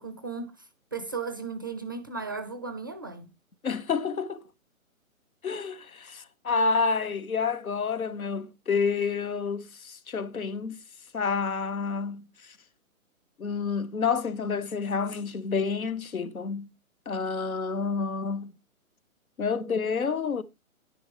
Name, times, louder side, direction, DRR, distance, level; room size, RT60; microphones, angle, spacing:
voice 1, 0.0-3.3, right 4 dB, 15° right, 0.5 m, -36 dB
voice 2, 3.6-4.4 5.4-10.8 11.1-12.2 13.4-16.7 17.1-18.5 19.4-20.4, left 5 dB, 85° left, 1.5 m, -29 dB
11.0 x 9.9 x 3.4 m
hypercardioid pair, 150°, 42 cm